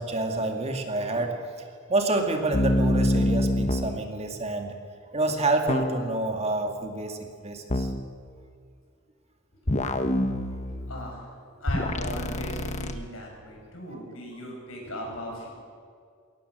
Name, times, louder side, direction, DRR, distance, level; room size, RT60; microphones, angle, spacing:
voice 1, 0.0-1.4 1.9-4.7 5.1-7.9 13.9-14.0, right 2 dB, 30° right, 4 dB, 2.2 m, -28 dB
sound 1, 2.5-4.0 5.7-6.2 7.7-8.0 9.7-11.2 11.7-12.9, left 1 dB, 35° left, 1.3 m, -26 dB
voice 2, 10.6-11.3 11.6-15.5, left 1 dB, 85° left, 0 dB, 7.0 m, -39 dB
22.0 x 18.0 x 7.9 m, 2.2 s
head